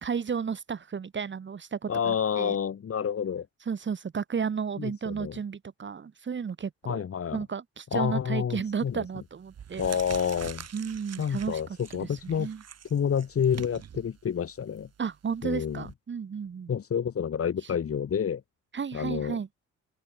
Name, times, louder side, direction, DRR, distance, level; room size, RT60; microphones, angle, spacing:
voice 1, 0.0-2.6 3.7-7.0 7.3-9.9 10.7-11.6 11.9-12.6 15.0-16.7 18.7-19.5, right 6 dB, 40° right, 2.0 m, -33 dB
voice 2, 1.9-3.5 4.8-5.3 6.9-7.4 7.9-9.0 9.8-10.6 11.2-12.5 12.9-14.9 15.4-15.8 16.7-18.4 18.9-19.4, left 7 dB, 50° left, 3.1 m, -29 dB
sound 1, 8.7-9.0 9.4-15.9, right 8 dB, 55° right, 4.6 m, -45 dB
open air
cardioid pair, 90°, 30 cm